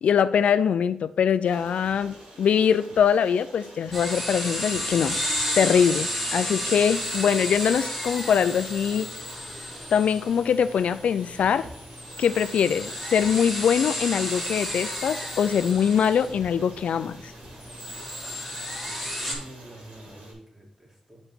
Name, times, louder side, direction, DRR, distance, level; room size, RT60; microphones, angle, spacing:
voice 1, 0.0-5.2 5.6-9.1 9.9-11.7 12.2-17.3, left 7 dB, 85° left, 13 dB, 0.4 m, -23 dB
Stream, 1.4-20.3, right 1 dB, 85° right, 3.4 m, -47 dB
sound 1, 3.9-19.3, equal, ahead, 3.1 m, -32 dB
voice 2, 19.1-21.2, right 1 dB, 20° right, -2 dB, 2.9 m, -47 dB
8.0 x 5.2 x 4.4 m, 0.76 s
cardioid pair, 85°, 2 cm